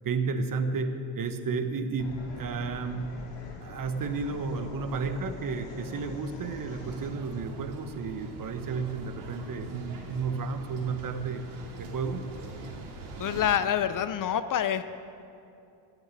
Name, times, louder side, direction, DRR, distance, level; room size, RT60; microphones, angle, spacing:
voice 1, 0.0-3.1 3.6-11.4 11.7-12.2, right 4 dB, 40° right, 8 dB, 1.3 m, -32 dB
sound 1, 2.0-7.1, left 3 dB, 60° left, 2.8 m, -44 dB
sound 2, 6.7-13.5, right 3 dB, 65° right, 2.6 m, -43 dB
voice 2, 13.2-14.8, left 9 dB, 40° left, 12 dB, 0.6 m, -26 dB
15.5 x 6.7 x 8.4 m, 2.6 s
supercardioid pair, 80°, 49 cm